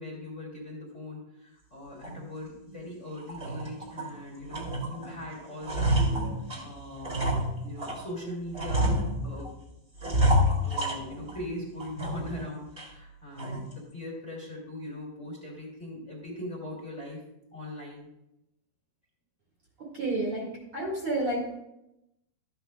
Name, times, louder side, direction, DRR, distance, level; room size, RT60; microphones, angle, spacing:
voice 1, 0.0-6.1 6.6-8.9 9.2-9.5 10.6-17.2 17.5-18.1, left 1 dB, 25° left, -4 dB, 2.1 m, -40 dB
sound 1, 2.0-2.2 2.7-2.8 3.2-4.1 4.5-5.1 5.4-8.0 8.5-9.5 10.0-11.4 11.8-12.4 12.8-12.9 13.4-13.7, equal, 20° right, 1.9 m, -28 dB
voice 2, 19.9-20.5 20.7-21.6, right 2 dB, 45° right, -4 dB, 2.5 m, -29 dB
13.5 x 8.4 x 2.4 m, 0.87 s
omnidirectional pair, 4.1 m